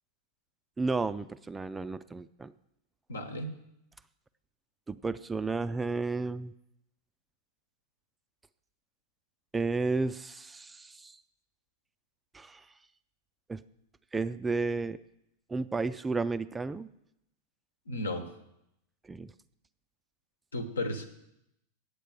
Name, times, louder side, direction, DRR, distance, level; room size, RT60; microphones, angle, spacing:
voice 1, 0.8-2.5 4.9-6.5 9.5-11.2 12.3-12.6 13.5-13.6 14.1-15.0 15.5-16.9 19.1-19.3, right 3 dB, 10° right, 14 dB, 0.3 m, -32 dB
voice 2, 3.1-3.5 17.9-18.3 20.5-21.1, left 1 dB, 70° left, 7 dB, 1.2 m, -34 dB
8.8 x 8.1 x 6.6 m, 0.80 s
figure-of-eight pair, 90°, 0 cm